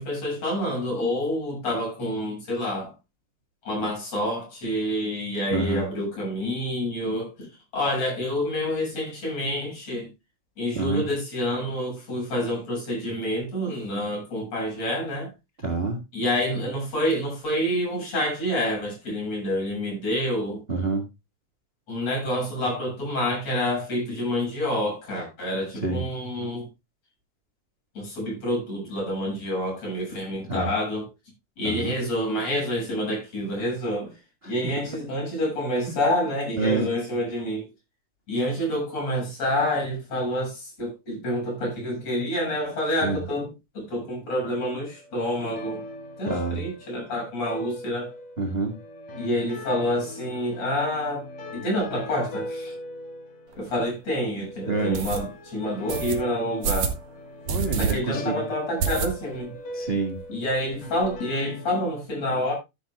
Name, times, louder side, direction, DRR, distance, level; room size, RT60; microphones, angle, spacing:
voice 1, 0.0-2.9 3.6-7.5 7.7-10.1 10.6-15.3 16.1-20.6 21.9-26.7 27.9-31.1 31.6-34.1 34.5-37.6 38.3-45.8 46.2-48.1 49.2-51.2 51.5-52.7 53.6-57.0 57.7-59.5 60.3-62.5, left 1 dB, 55° left, 8.5 m, -28 dB
voice 2, 5.5-5.8 10.7-11.1 15.6-16.0 20.7-21.0 25.8-26.0 30.5-30.7 31.6-31.9 34.4-34.5 36.6-36.9 43.0-43.2 46.2-46.6 48.4-48.7 54.7-55.0 57.5-58.4 59.7-60.2, right 3 dB, 25° right, 1.4 m, -27 dB
sound 1, 44.4-61.9, left 1 dB, 80° left, 4.4 m, -40 dB
sound 2, 53.5-53.6 54.1-54.2 54.9-55.2 55.9-56.2 56.6-57.0 57.5-57.9 58.2-58.3 58.8-59.4 59.8-59.9 60.1-60.2 60.5-61.1, right 6 dB, 65° right, 2.7 m, -27 dB
14.0 x 10.5 x 2.3 m
omnidirectional pair, 3.6 m